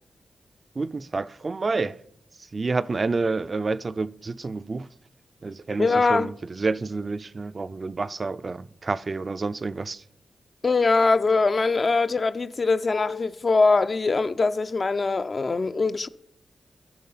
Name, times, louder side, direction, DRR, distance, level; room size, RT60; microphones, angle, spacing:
voice 1, 0.8-2.0 2.4-4.9 5.4-10.0, right 3 dB, 50° right, 0.3 m, -29 dB
voice 2, 5.8-6.3 10.6-16.1, left 3 dB, 50° left, 0.4 m, -22 dB
10.5 x 5.9 x 5.5 m
cardioid pair, 50°, 0 cm